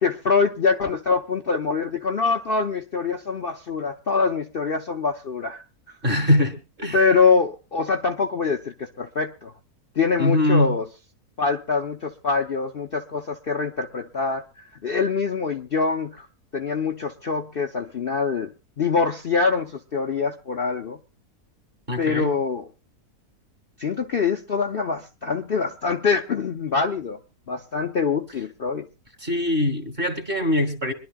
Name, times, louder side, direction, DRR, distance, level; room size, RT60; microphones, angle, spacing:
voice 1, 0.0-5.6 6.9-9.5 10.0-10.8 11.4-14.4 14.8-16.3 16.5-18.5 18.8-21.0 22.0-22.7 23.8-27.2 27.5-28.9, left 5 dB, 45° left, 2 dB, 0.9 m, -24 dB
voice 2, 6.0-7.0 10.2-10.8 21.9-22.4 29.2-30.9, left 1 dB, 35° right, 8 dB, 2.1 m, -22 dB
25.0 x 11.5 x 2.3 m, 0.29 s
omnidirectional pair, 1.7 m